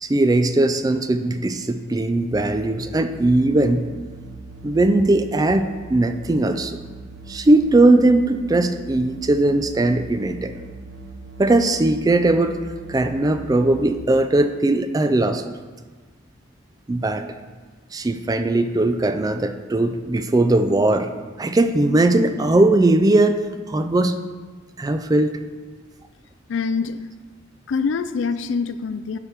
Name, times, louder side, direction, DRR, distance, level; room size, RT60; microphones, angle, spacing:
voice 1, 0.0-3.9 4.6-6.8 7.3-10.5 11.4-12.6 12.9-15.4 16.9-17.2 17.9-21.1 21.4-24.2 24.8-25.4, right 2 dB, 20° right, 9 dB, 0.4 m, -19 dB
sound 1, 2.3-14.0, right 3 dB, 75° right, 0.7 m, -40 dB
voice 2, 26.5-27.0 27.7-29.2, left 5 dB, 65° left, 12 dB, 0.4 m, -24 dB
10.5 x 5.7 x 3.4 m, 1.4 s
head